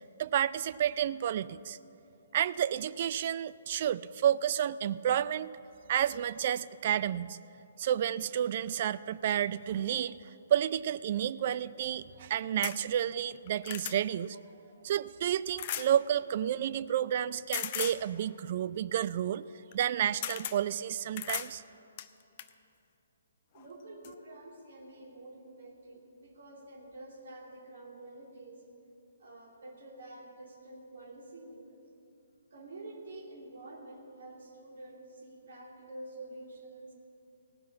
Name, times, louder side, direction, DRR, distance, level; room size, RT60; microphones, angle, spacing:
voice 1, 0.2-1.8 2.3-5.5 5.9-7.4 7.8-10.2 10.5-14.4 14.8-19.4 19.7-21.6, right 10 dB, 45° right, 16 dB, 0.3 m, -30 dB
sound 1, 12.6-12.8 13.3-14.0 15.6-15.9 17.5-18.0 19.7-19.9 20.2-20.6 21.2-21.5 22.0-22.5 23.5-23.7 24.0-24.1, left 11 dB, 40° left, 0.5 m, -36 dB
voice 2, 23.5-28.6 29.2-31.8 32.5-36.9, right 2 dB, 65° right, -1 dB, 2.7 m, -48 dB
17.0 x 5.9 x 8.5 m, 2.8 s
hypercardioid pair, 140°, 0 cm